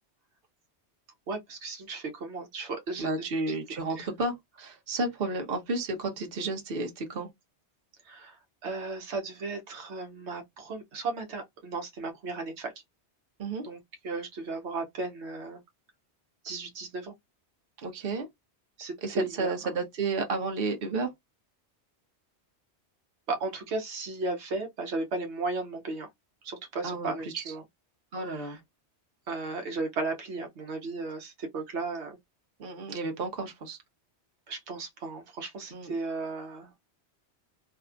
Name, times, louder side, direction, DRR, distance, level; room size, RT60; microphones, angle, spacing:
voice 1, 1.3-3.6 3.9-4.1 8.0-12.7 13.6-15.6 16.4-17.1 18.8-19.5 23.3-26.1 26.4-27.6 28.3-28.6 29.3-32.2 34.5-36.7, right 3 dB, 80° right, 1.0 m, -35 dB
voice 2, 3.0-7.3 13.4-13.7 17.8-18.3 19.0-21.1 26.8-27.1 28.1-28.6 32.6-33.8 35.7-35.9, right 3 dB, 60° right, 1.0 m, -32 dB
2.8 x 2.4 x 2.3 m
omnidirectional pair, 1.1 m